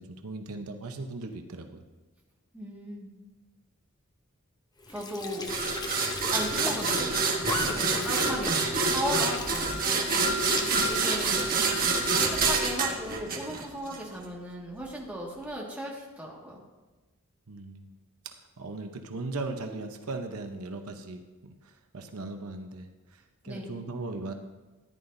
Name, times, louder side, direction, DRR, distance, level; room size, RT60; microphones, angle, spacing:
voice 1, 0.0-1.8 17.5-17.9 18.2-24.3, right 3 dB, 80° right, 5 dB, 0.8 m, -38 dB
voice 2, 2.5-3.1 4.9-5.4 6.3-8.6 8.8-10.0 10.8-11.4 11.8-16.6 23.5-23.7, equal, 5° right, -4 dB, 1.8 m, -36 dB
Squeak / Sink (filling or washing) / Trickle dribble, 4.8-12.7, left 2 dB, 20° left, 0.7 m, -38 dB
sound 1, 5.5-14.0, right 4 dB, 40° right, 1.2 m, -27 dB
13.5 x 10.5 x 2.7 m, 1.2 s
head